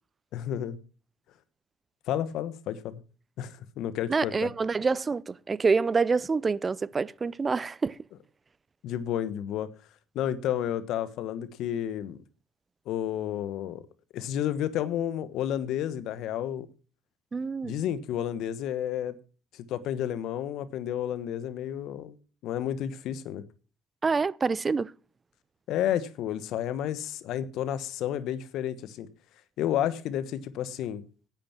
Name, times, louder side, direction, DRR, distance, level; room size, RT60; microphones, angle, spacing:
voice 1, 0.3-0.8 2.1-3.0 3.4-4.5 8.8-9.7 10.1-12.2 12.9-13.8 14.1-16.7 17.6-19.1 19.5-22.2 22.4-23.4 25.7-29.1 29.6-31.0, left 10 dB, 70° left, 1.2 m, -31 dB
voice 2, 4.1-8.0 17.3-17.7 24.0-24.9, right 4 dB, 30° right, 0.6 m, -27 dB
10.5 x 8.8 x 6.0 m
supercardioid pair, 65°, 0 cm